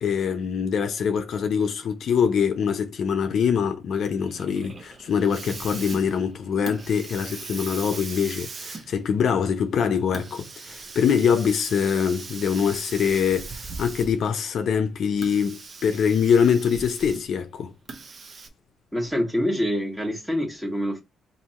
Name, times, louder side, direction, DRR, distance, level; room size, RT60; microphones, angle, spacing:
voice 1, 0.0-17.7, left 7 dB, 65° left, 0.6 m, -24 dB
Hiss, 4.0-14.4 15.1-17.4 17.9-18.5, right 4 dB, 40° right, 0.7 m, -40 dB
voice 2, 18.9-21.0, equal, 5° right, 1.3 m, -26 dB
2.8 x 2.7 x 4.2 m
cardioid pair, 90°, 0 cm